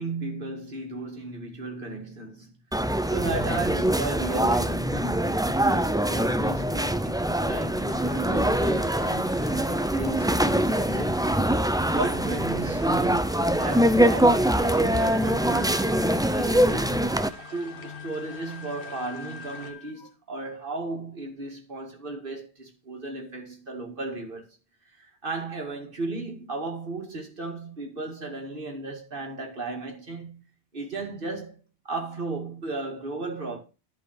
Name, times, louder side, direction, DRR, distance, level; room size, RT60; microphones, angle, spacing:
voice 1, 0.0-2.5 2.8-11.2 11.5-17.0 17.5-24.5 25.0-30.4 30.7-31.6 31.8-33.6, right 2 dB, 55° right, 2.3 m, -35 dB
sound 1, 2.7-17.3, right 1 dB, 5° right, 0.3 m, -23 dB
sound 2, 7.9-19.7, left 3 dB, 55° left, 1.7 m, -45 dB
Wind instrument woodwind instrument, 14.9-20.1, left 3 dB, 75° left, 2.5 m, -44 dB
11.0 x 5.2 x 6.5 m
omnidirectional pair, 1.1 m